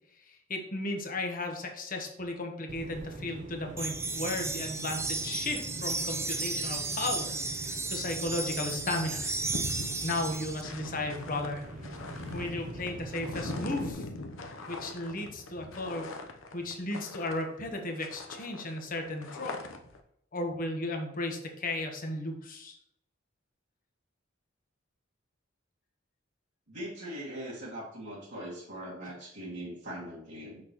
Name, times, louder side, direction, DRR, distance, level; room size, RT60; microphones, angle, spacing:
voice 1, 0.2-9.4 10.0-11.7 12.3-14.0 14.7-16.1 16.5-19.6 20.3-22.8, left 2 dB, 45° left, 4 dB, 1.2 m, -35 dB
sound 1, 2.7-13.9, right 2 dB, 40° right, 0.8 m, -43 dB
sound 2, 3.8-10.6, right 3 dB, 15° right, 0.4 m, -34 dB
sound 3, 8.8-17.7 18.0-20.0, left 2 dB, 75° left, 0.8 m, -42 dB
voice 2, 26.7-30.6, right 1 dB, 60° right, -8 dB, 1.9 m, -41 dB
6.1 x 5.9 x 3.0 m, 0.76 s
head